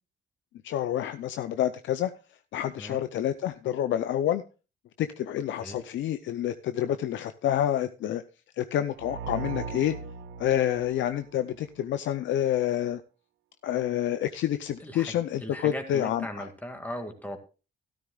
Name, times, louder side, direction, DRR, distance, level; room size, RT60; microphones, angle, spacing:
voice 1, 0.6-2.1 2.5-4.4 5.0-8.2 8.6-10.0 10.4-13.0 13.6-16.5, left 11 dB, 75° left, 11 dB, 0.6 m, -28 dB
sound 1, 9.0-11.8, right 5 dB, 80° right, 1.2 m, -38 dB
voice 2, 14.8-17.4, equal, 10° left, 4 dB, 2.0 m, -38 dB
13.0 x 12.5 x 2.3 m, 0.32 s
cardioid pair, 90°, 20 cm